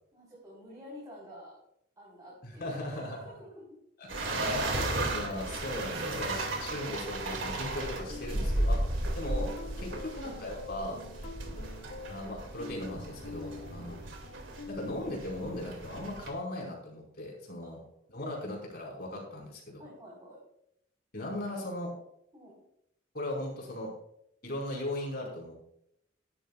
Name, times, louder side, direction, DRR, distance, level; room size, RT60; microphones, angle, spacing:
voice 1, 0.1-1.5 2.0-3.7 8.3-8.5 9.7-9.9 11.2-11.4 13.4-13.7 17.6-17.8 18.2-18.5 19.8-20.4 22.3-22.6, equal, 20° right, -6 dB, 4.2 m, -50 dB
voice 2, 2.4-3.2 4.0-4.8 5.1-8.8 9.1-11.0 12.1-14.1 14.7-17.8 18.1-19.8 21.1-21.9 23.1-23.9 24.4-25.5, left 1 dB, 55° left, -2 dB, 4.9 m, -38 dB
sound 1, 4.1-16.3, right 1 dB, 80° right, 2.4 m, -34 dB
sound 2, 8.1-15.6, left 3 dB, 85° left, 2.0 m, -46 dB
17.5 x 11.5 x 2.4 m, 0.76 s
head